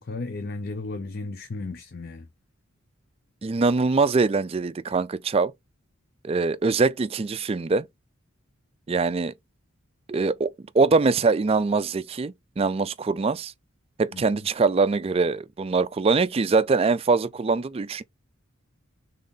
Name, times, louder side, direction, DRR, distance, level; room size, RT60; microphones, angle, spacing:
voice 1, 0.0-2.3 14.1-14.4, left 3 dB, 45° left, 0.4 m, -34 dB
voice 2, 3.4-5.5 6.2-7.9 8.9-9.3 10.1-13.5 14.0-18.0, right 4 dB, 25° right, 0.3 m, -23 dB
3.7 x 3.6 x 3.9 m
head